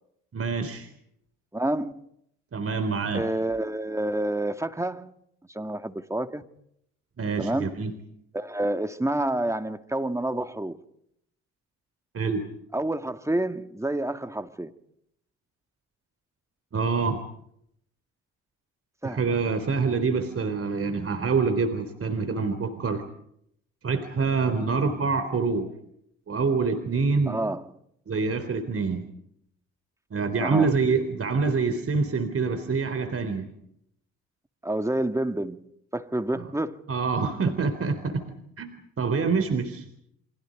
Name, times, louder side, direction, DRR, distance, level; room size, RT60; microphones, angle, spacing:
voice 1, 0.3-0.9 2.5-3.2 7.2-7.9 12.1-12.5 16.7-17.2 19.0-23.0 23.8-25.7 26.3-27.4 28.1-29.0 30.1-33.5 36.3-36.5 36.9-38.2 38.6-38.7 39.0-39.8, right 4 dB, 40° right, 3.8 m, -26 dB
voice 2, 1.5-2.0 3.1-5.1 5.5-6.4 7.4-7.8 8.3-10.8 12.7-14.7 19.0-19.3 27.3-27.6 30.4-30.7 34.6-36.8, right 1 dB, 10° right, 2.3 m, -28 dB
29.5 x 25.0 x 5.3 m
hypercardioid pair, 55°, 33 cm